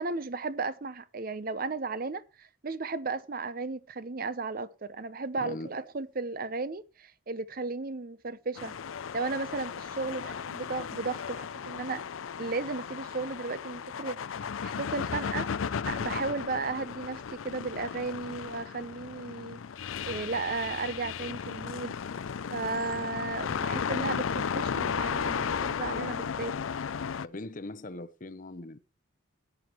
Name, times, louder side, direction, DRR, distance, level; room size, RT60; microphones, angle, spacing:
voice 1, 0.0-8.7 9.1-12.0 12.4-15.5 15.9-19.6 20.0-21.9 22.5-26.6, right 3 dB, 45° right, 0.7 m, -35 dB
voice 2, 5.4-5.8 27.2-28.8, left 2 dB, 40° left, 0.8 m, -41 dB
sound 1, 8.5-27.3, left 6 dB, 85° left, 0.5 m, -35 dB
16.5 x 9.6 x 3.0 m
head